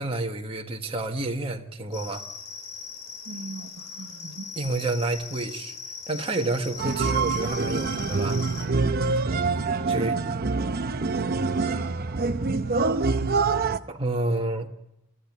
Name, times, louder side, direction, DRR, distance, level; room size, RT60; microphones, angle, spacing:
voice 1, 0.0-2.2 4.6-5.7 6.1-8.4 9.9-10.2 13.9-14.7, right 2 dB, 25° right, 1.5 m, -29 dB
sound 1, 1.9-8.6, left 6 dB, 55° left, 4.6 m, -40 dB
voice 2, 3.2-4.5 10.1-10.2 10.5-12.4, right 3 dB, 80° right, 1.1 m, -42 dB
sound 2, 6.8-13.8, right 4 dB, 45° right, 0.8 m, -25 dB
24.0 x 14.0 x 9.5 m
head